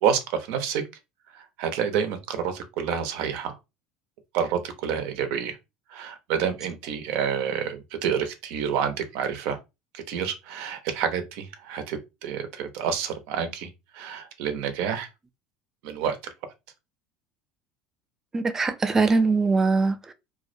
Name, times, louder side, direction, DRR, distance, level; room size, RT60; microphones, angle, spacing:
voice 1, 0.0-0.8 1.3-3.6 4.3-5.6 5.9-9.6 9.9-15.1 15.8-16.2, right 8 dB, 70° right, 0.6 m, -28 dB
voice 2, 18.3-20.1, right 3 dB, 15° right, 0.3 m, -22 dB
2.3 x 2.1 x 2.5 m
supercardioid pair, 125°, 3 cm